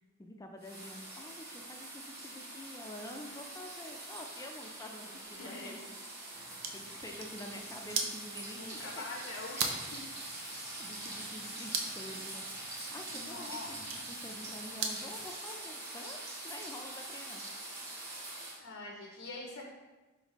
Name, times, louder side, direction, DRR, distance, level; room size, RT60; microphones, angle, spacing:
voice 1, 0.2-5.9 6.7-9.3 10.8-17.4, left 1 dB, 15° left, 3 dB, 0.3 m, -48 dB
sound 1, 0.6-18.6, right 2 dB, 55° right, 1.2 m, -44 dB
voice 2, 5.4-5.8 6.8-7.1 8.6-10.0 13.1-13.7 18.3-19.7, left 2 dB, 70° left, -1 dB, 0.6 m, -45 dB
sound 2, 6.3-15.2, right 5 dB, 75° right, 0.5 m, -41 dB
4.4 x 4.1 x 2.9 m, 1.2 s
head